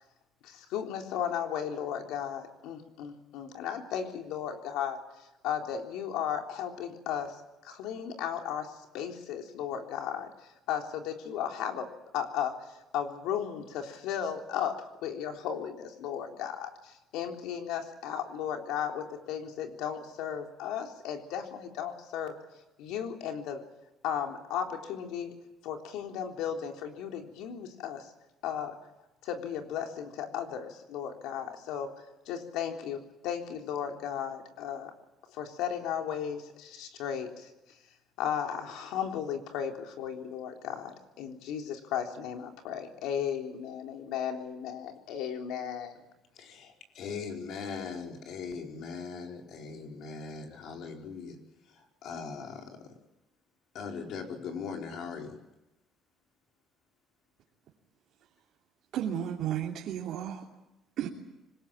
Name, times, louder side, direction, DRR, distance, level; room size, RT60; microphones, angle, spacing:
voice 1, 0.4-5.0 5.4-7.4 7.6-10.3 10.7-22.4 22.8-23.6 24.0-25.3 25.6-28.1 28.4-28.8 29.2-31.9 32.3-34.9 35.3-37.5 38.2-46.0, left 8 dB, 85° left, 3 dB, 3.6 m, -35 dB
voice 2, 46.3-51.4 51.6-53.0 53.7-55.4, left 5 dB, 65° left, 2 dB, 4.9 m, -40 dB
voice 3, 58.9-60.4 61.0-61.1, right 10 dB, 70° right, -2 dB, 3.1 m, -33 dB
26.0 x 20.5 x 8.9 m, 0.96 s
cardioid pair, 125°, 0 cm